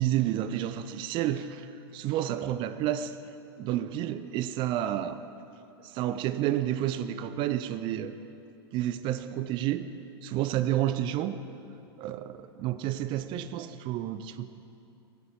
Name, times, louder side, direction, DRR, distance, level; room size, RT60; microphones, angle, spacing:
voice 1, 0.0-3.1 3.6-5.2 5.8-8.1 8.7-9.9 10.2-11.5 12.0-14.5, right 12 dB, 35° right, 12 dB, 0.6 m, -30 dB
15.5 x 8.3 x 6.2 m, 2.7 s
figure-of-eight pair, 90°, 13 cm